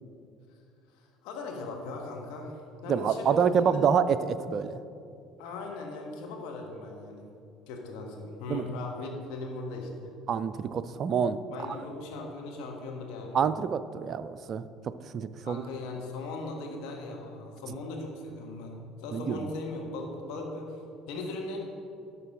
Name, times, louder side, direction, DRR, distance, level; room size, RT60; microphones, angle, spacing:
voice 1, 0.9-3.8 5.4-7.3 7.7-10.1 11.5-13.4 15.4-21.6, left 2 dB, 60° left, 0 dB, 1.4 m, -39 dB
voice 2, 2.9-4.8 8.5-8.7 10.3-11.4 11.7-11.8 13.3-15.6 19.1-19.5, right 7 dB, 45° right, 13 dB, 0.4 m, -27 dB
12.0 x 6.8 x 3.7 m, 2.6 s
figure-of-eight pair, 60°, 0 cm